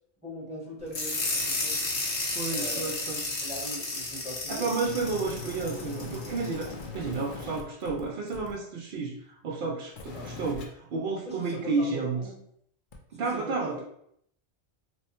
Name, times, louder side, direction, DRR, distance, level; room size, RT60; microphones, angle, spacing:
voice 1, 0.2-1.8 2.5-3.0 3.4-4.8 10.1-10.3 11.3-12.4 13.1-13.8, equal, 5° right, -6 dB, 0.9 m, -40 dB
sound 1, 0.9-6.7, left 2 dB, 75° left, 1.2 m, -32 dB
voice 2, 2.3-3.2 4.5-6.7 6.9-12.2 13.1-13.8, right 4 dB, 60° right, 0 dB, 0.6 m, -31 dB
sound 2, 4.8-8.5 9.9-10.6 12.9-13.0, left 3 dB, 55° left, 0.7 m, -40 dB
3.0 x 2.1 x 4.1 m, 0.68 s
omnidirectional pair, 1.2 m